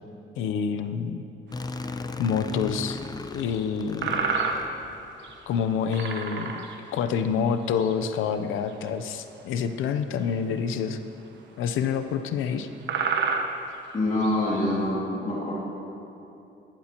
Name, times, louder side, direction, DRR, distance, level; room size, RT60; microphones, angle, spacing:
voice 1, 0.4-1.2 2.2-3.0 3.3-4.3 5.5-6.7 6.9-11.0 11.6-12.7, left 7 dB, 85° left, 9 dB, 0.7 m, -27 dB
sound 1, 1.5-5.4, left 3 dB, 20° left, 0.5 m, -36 dB
sound 2, 1.9-2.0 2.5-2.6 3.5-3.6 4.0-4.9 5.2-5.5 5.9-7.0 7.6-7.9 8.6-8.9 10.2-10.3 10.9-11.0 11.8-11.9 12.5-12.6 12.8-14.4, right 5 dB, 65° right, 1.1 m, -29 dB
voice 2, 13.9-15.5, left 1 dB, 35° left, -6 dB, 2.4 m, -25 dB
17.0 x 12.0 x 3.0 m, 2.8 s
cardioid pair, 90°, 20 cm